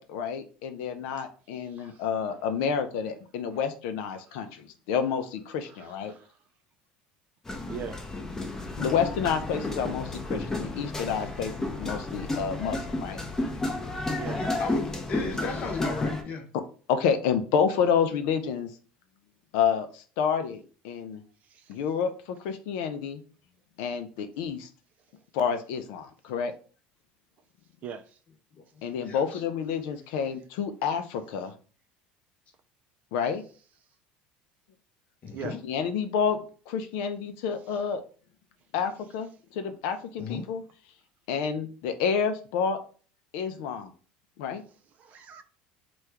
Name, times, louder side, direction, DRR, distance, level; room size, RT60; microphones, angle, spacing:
voice 1, 0.0-6.1 8.8-13.2 16.9-18.7 19.5-21.2 21.7-23.2 23.8-24.7 25.3-26.5 28.8-31.5 33.1-33.4 35.6-36.4 36.7-38.0 38.7-40.6 41.3-42.8 43.3-43.9 44.4-44.6, left 7 dB, 80° left, 0.4 m, -29 dB
voice 2, 1.6-2.1 4.3-4.5 5.6-6.3 7.7-8.0 14.1-14.4 21.5-21.7 27.8-28.2 35.3-35.6 45.0-45.4, right 7 dB, 45° right, 0.4 m, -41 dB
sound 1, 7.5-16.2, left 2 dB, 15° left, 0.6 m, -32 dB
voice 3, 14.3-16.4 29.0-29.4 35.2-35.6 40.2-40.5, left 4 dB, 40° left, 0.9 m, -36 dB
2.9 x 2.3 x 3.4 m
supercardioid pair, 120°, 4 cm